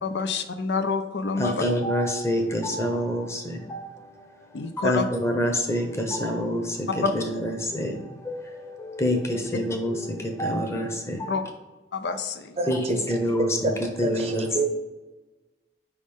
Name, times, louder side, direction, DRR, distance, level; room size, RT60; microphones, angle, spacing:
voice 1, 0.0-1.6 4.5-5.0 7.0-7.1 11.3-11.4 11.9-12.5, left 4 dB, 70° left, 8 dB, 0.5 m, -27 dB
voice 2, 1.4-3.8 4.8-8.0 8.2-11.4 12.7-12.8 13.1-13.5 14.0-14.5, equal, 15° left, 3 dB, 0.8 m, -27 dB
voice 3, 12.6-13.4 13.6-13.7 14.0-14.7, right 2 dB, 35° right, 4 dB, 0.7 m, -28 dB
5.1 x 3.5 x 5.3 m, 1.2 s
head